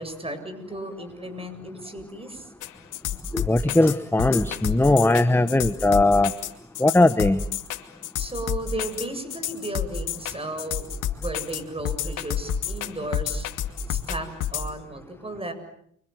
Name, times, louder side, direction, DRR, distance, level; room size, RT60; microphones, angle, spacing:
voice 1, 0.0-2.5 8.2-13.5 13.9-15.5, right 1 dB, 20° right, 9 dB, 7.5 m, -34 dB
sound 1, 2.6-14.7, left 9 dB, 85° left, 2.4 m, -29 dB
voice 2, 3.3-6.3 6.8-7.4, left 2 dB, 5° left, 11 dB, 1.2 m, -19 dB
30.0 x 25.5 x 7.8 m, 0.69 s
cardioid pair, 90°, 30 cm